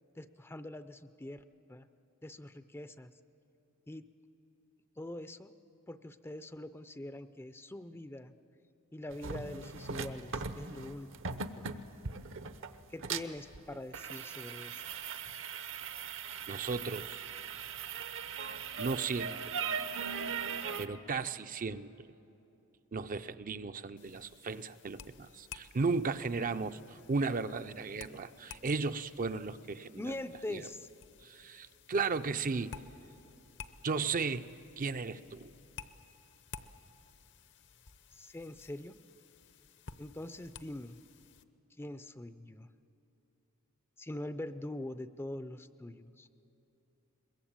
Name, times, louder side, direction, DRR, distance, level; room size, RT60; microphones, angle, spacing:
voice 1, 0.1-1.4 1.7-1.9 2.2-3.1 3.9-4.1 5.0-5.5 5.9-8.3 8.9-11.7 12.9-14.8 29.9-30.9 38.1-39.0 40.0-41.0 41.8-42.7 44.0-46.3, left 1 dB, 10° left, 12 dB, 0.5 m, -43 dB
sound 1, 9.1-20.9, right 6 dB, 65° right, 0.9 m, -39 dB
voice 2, 16.5-17.3 18.8-19.5 20.8-22.1 22.9-30.1 30.5-30.7 31.2-32.7 33.8-34.4 34.8-35.5, right 4 dB, 40° right, 10 dB, 0.5 m, -35 dB
sound 2, 24.0-41.4, left 6 dB, 55° left, 0.8 m, -54 dB
22.5 x 21.5 x 8.8 m, 2.9 s
head